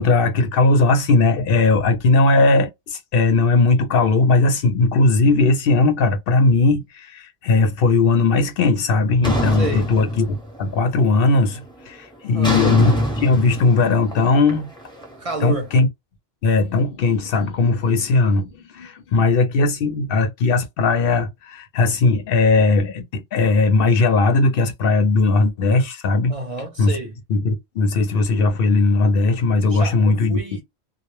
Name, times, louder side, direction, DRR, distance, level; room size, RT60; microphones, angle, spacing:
voice 1, 0.0-14.7 15.4-15.9 16.4-26.3 26.8-27.0 27.3-30.4, left 3 dB, 70° left, 0.7 m, -18 dB
sound 1, 9.2-10.8 11.1-11.5 12.4-15.5, equal, 5° left, 0.7 m, -24 dB
voice 2, 9.6-9.9 12.3-12.6 15.2-15.7 26.3-27.2 29.7-30.6, right 2 dB, 40° right, 0.6 m, -29 dB
2.1 x 2.1 x 3.0 m
omnidirectional pair, 1.0 m